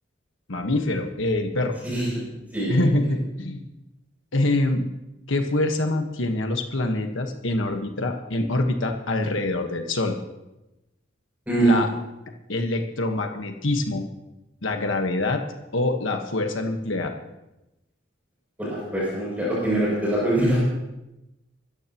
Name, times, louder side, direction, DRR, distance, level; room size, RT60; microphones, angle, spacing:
voice 1, 0.5-1.8 2.7-3.6 4.3-4.9 5.3-10.2 11.6-11.9 12.5-14.0 14.6-15.4 15.7-17.1, left 2 dB, 75° left, 4 dB, 1.4 m, -25 dB
voice 2, 18.6-20.6, right 1 dB, 10° right, -7 dB, 6.9 m, -23 dB
24.5 x 14.0 x 3.0 m, 0.96 s
head